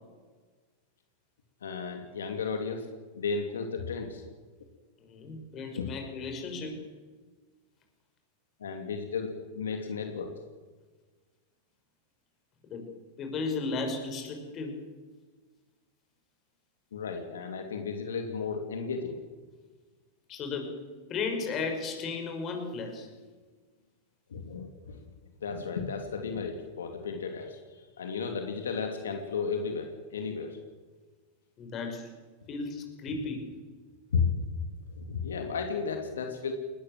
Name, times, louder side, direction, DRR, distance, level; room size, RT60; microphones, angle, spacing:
voice 1, 1.6-2.9 3.1-4.2 5.8-5.9 8.6-10.4 16.9-19.2 24.3-25.0 25.4-30.6 34.1-34.4 34.9-36.5, left 5 dB, 85° left, 5 dB, 2.6 m, -34 dB
voice 2, 5.0-6.7 12.6-12.9 13.2-14.8 20.3-20.7 21.1-23.1 31.6-32.1 32.5-33.5, left 4 dB, 35° left, 5 dB, 6.2 m, -35 dB
21.0 x 20.0 x 7.6 m, 1.4 s
hypercardioid pair, 110°, 0 cm